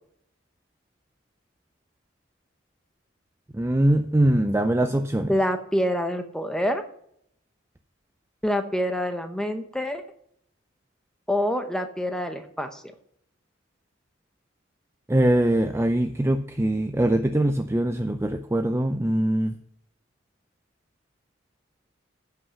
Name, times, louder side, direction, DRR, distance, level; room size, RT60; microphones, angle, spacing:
voice 1, 3.5-5.3 15.1-19.5, right 1 dB, 10° right, 8 dB, 0.4 m, -22 dB
voice 2, 5.3-6.8 8.4-10.0 11.3-12.8, equal, 5° left, 7 dB, 0.8 m, -26 dB
11.0 x 5.7 x 6.8 m, 0.69 s
head